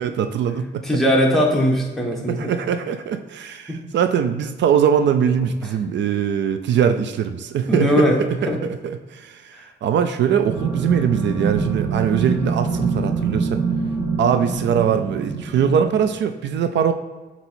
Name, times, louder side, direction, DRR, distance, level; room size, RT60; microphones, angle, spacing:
voice 1, 0.0-0.9 2.3-13.6 14.2-16.9, right 8 dB, 75° right, 9 dB, 0.4 m, -21 dB
voice 2, 0.8-2.5 3.7-3.8 7.7-8.2 8.5-8.6 9.5-9.6, equal, ahead, -2 dB, 1.2 m, -19 dB
sound 1, 10.4-16.1, right 4 dB, 25° right, 1.8 m, -25 dB
7.9 x 2.9 x 4.4 m, 1.3 s
cardioid pair, 125°, 19 cm